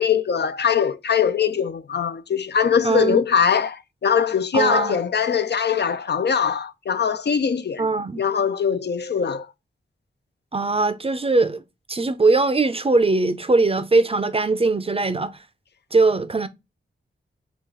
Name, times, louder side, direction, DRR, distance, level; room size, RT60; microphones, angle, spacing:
voice 1, 0.0-7.8 8.2-9.5, left 7 dB, 55° left, 0.4 m, -22 dB
voice 2, 2.8-3.2 4.5-5.0 7.8-8.2 10.5-11.6 11.9-15.3 15.9-16.5, right 3 dB, 30° right, 0.5 m, -20 dB
4.6 x 2.4 x 3.7 m
cardioid pair, 60°, 20 cm